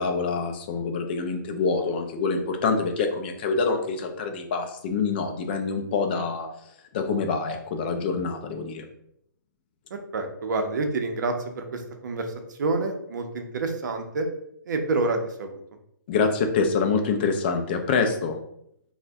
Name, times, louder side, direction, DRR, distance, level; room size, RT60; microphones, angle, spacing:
voice 1, 0.0-6.5 6.9-8.8 16.1-18.4, left 4 dB, 30° left, 5 dB, 0.3 m, -26 dB
voice 2, 10.1-12.3 12.6-14.3 14.7-15.6, right 3 dB, 65° right, 5 dB, 0.6 m, -28 dB
2.5 x 2.1 x 3.4 m, 0.74 s
hypercardioid pair, 160°, 11 cm